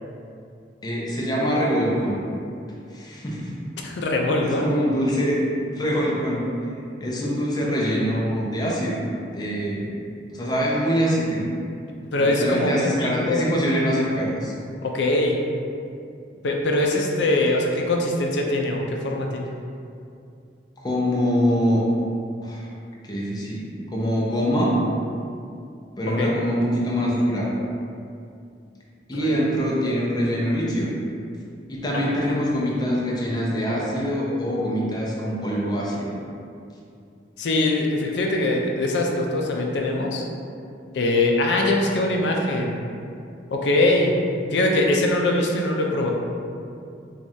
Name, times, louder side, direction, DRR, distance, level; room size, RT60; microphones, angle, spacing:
voice 1, 0.8-2.2 2.9-3.5 4.4-5.4 5.8-6.5 7.0-9.0 9.3-9.9 10.3-11.5 12.2-14.5 20.8-21.8 22.4-22.7 23.0-23.6 23.9-24.7 26.0-27.5 29.1-30.9 31.7-36.2, equal, 20° left, -5 dB, 0.6 m, -24 dB
voice 2, 3.8-4.7 12.1-13.6 14.8-15.4 16.4-19.5 26.1-26.4 29.1-29.3 31.9-32.3 37.4-40.2 40.9-42.8 43.5-44.1 44.5-46.1, left 2 dB, 70° left, 1 dB, 0.4 m, -22 dB
4.6 x 2.4 x 2.7 m, 2.5 s
head